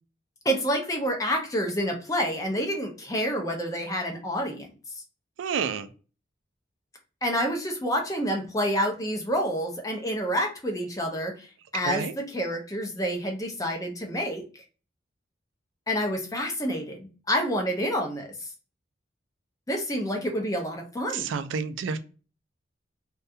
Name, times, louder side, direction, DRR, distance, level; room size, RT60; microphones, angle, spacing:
voice 1, 0.4-4.7 7.2-11.5 11.7-14.4 15.9-18.5 19.7-21.3, equal, 20° left, 3 dB, 0.5 m, -28 dB
voice 2, 5.4-5.9 11.8-12.1 21.1-22.0, right 6 dB, 80° right, 11 dB, 0.3 m, -29 dB
2.4 x 2.2 x 2.6 m, 0.35 s
head